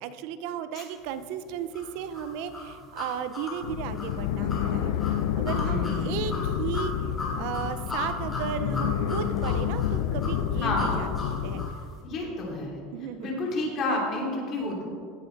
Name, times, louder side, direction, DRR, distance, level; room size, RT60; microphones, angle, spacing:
voice 1, 0.0-4.9 5.4-6.9 7.4-11.1 11.4-11.6 12.9-13.3, right 9 dB, 60° right, 12 dB, 0.5 m, -35 dB
sound 1, 1.7-11.8, left 3 dB, 15° left, 3.4 m, -36 dB
sound 2, 3.6-11.7, left 10 dB, 70° left, 0.5 m, -29 dB
voice 2, 5.6-6.1 10.6-11.0 12.0-12.8 13.2-14.8, left 2 dB, 35° left, -2 dB, 2.9 m, -30 dB
16.0 x 8.5 x 4.0 m, 2.3 s
supercardioid pair, 155°, 0 cm